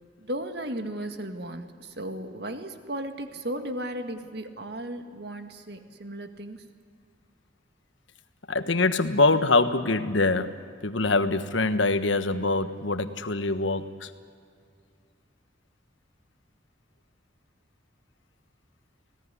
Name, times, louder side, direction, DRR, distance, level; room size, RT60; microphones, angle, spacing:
voice 1, 0.2-6.6, right 1 dB, 55° right, 7 dB, 1.9 m, -35 dB
voice 2, 8.5-14.1, left 3 dB, 85° left, 10 dB, 1.4 m, -24 dB
25.5 x 18.0 x 9.9 m, 2.2 s
head